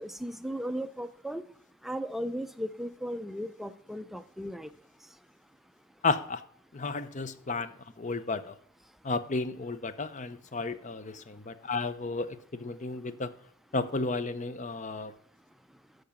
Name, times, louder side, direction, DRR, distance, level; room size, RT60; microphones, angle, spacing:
voice 1, 0.0-1.4 1.8-4.7, equal, ahead, 10 dB, 0.4 m, -36 dB
voice 2, 6.0-6.4 6.7-7.7 8.0-8.5 9.0-13.3 13.7-15.1, left 3 dB, 40° left, 13 dB, 0.7 m, -33 dB
8.6 x 6.7 x 5.8 m, 0.66 s
head